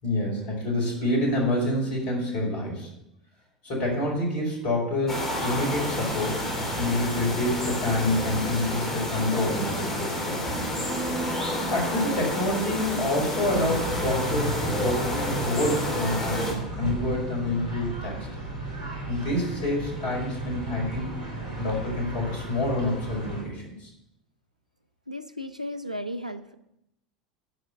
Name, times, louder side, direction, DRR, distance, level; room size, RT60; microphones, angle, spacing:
voice 1, 0.0-2.9 3.6-6.5 6.8-10.7 11.7-18.2 19.1-21.2 21.6-23.9, left 1 dB, 50° left, -2 dB, 5.1 m, -27 dB
sound 1, 5.1-16.5, equal, 15° left, 3.5 m, -29 dB
sound 2, 13.4-23.4, right 2 dB, 85° left, 3.3 m, -35 dB
voice 2, 25.1-26.5, left 1 dB, 90° right, 11 dB, 0.6 m, -35 dB
11.0 x 5.1 x 8.0 m, 0.82 s
figure-of-eight pair, 75°, 4 cm